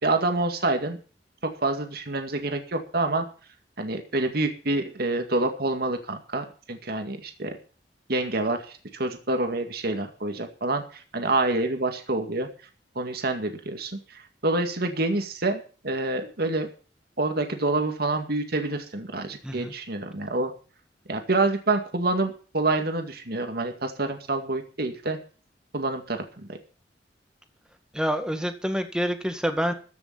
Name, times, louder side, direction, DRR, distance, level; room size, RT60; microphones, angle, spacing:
voice 1, 0.0-1.0 1.6-3.2 3.8-7.6 8.1-12.5 13.0-16.7 17.2-20.5 21.1-25.2 25.7-26.6, right 2 dB, 60° right, 6 dB, 2.1 m, -27 dB
voice 2, 27.9-29.7, equal, 5° right, 7 dB, 1.9 m, -27 dB
14.5 x 6.9 x 8.6 m, 0.39 s
head